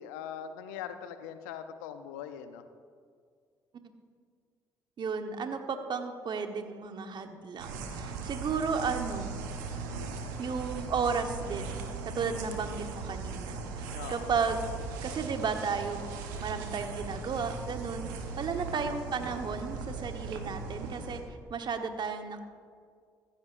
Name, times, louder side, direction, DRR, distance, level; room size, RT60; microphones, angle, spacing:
voice 1, 0.0-2.6 9.9-10.3 13.9-14.4 18.6-18.9, left 9 dB, 80° left, 10 dB, 0.7 m, -42 dB
voice 2, 5.0-9.3 10.4-14.7 15.0-16.0 16.4-18.1 18.4-21.2 21.5-22.4, right 5 dB, 50° right, 6 dB, 1.2 m, -34 dB
sound 1, 7.6-21.2, right 4 dB, 85° right, 1.0 m, -38 dB
14.5 x 14.0 x 2.6 m, 2.1 s
hypercardioid pair, 50°, 10 cm